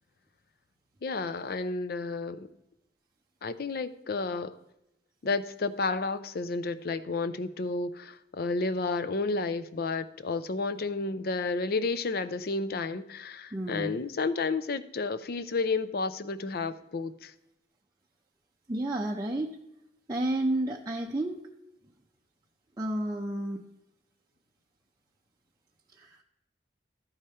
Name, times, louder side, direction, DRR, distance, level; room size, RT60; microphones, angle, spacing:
voice 1, 1.0-2.5 3.4-4.6 5.2-17.3, left 3 dB, 55° left, 0.5 m, -31 dB
voice 2, 13.5-13.9 18.7-19.5 20.1-21.4 22.8-23.6 26.0-26.2, right 1 dB, 20° right, 0.5 m, -31 dB
12.5 x 5.0 x 4.3 m
head